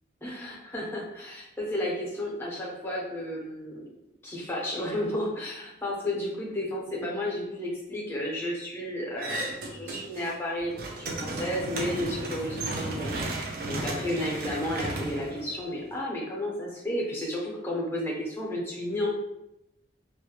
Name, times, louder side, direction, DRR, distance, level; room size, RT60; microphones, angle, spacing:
voice 1, 0.2-3.8 4.2-19.2, left 1 dB, 15° left, -4 dB, 0.5 m, -32 dB
sound 1, 9.2-10.3 10.6-16.0, right 2 dB, 50° right, 0.4 m, -34 dB
2.3 x 2.0 x 2.8 m, 0.86 s
head